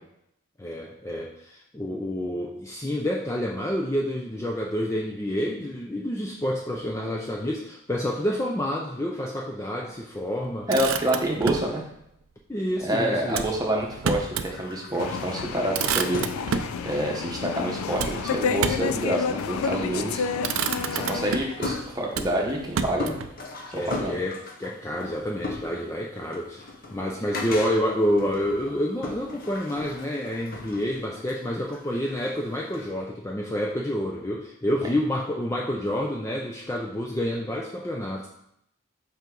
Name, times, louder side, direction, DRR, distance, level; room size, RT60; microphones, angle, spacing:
voice 1, 0.6-10.7 12.5-13.5 20.0-20.1 23.7-38.3, equal, 15° left, -1 dB, 0.4 m, -28 dB
Motor vehicle (road), 10.5-11.7 13.3-14.5 14.9-15.0 15.4-16.8 18.0-19.0 19.8-20.1 20.4-21.6 22.1-23.3, right 6 dB, 75° right, 0.4 m, -30 dB
voice 2, 10.7-11.8 12.8-16.2 16.8-20.2 20.9-23.2 23.7-24.2, right 1 dB, 15° right, -1 dB, 1.0 m, -27 dB
sound 1, 14.3-32.9, left 3 dB, 40° left, 0.8 m, -39 dB
sound 2, 15.0-21.4, left 6 dB, 85° left, 0.4 m, -30 dB
5.4 x 5.0 x 3.8 m, 0.76 s
head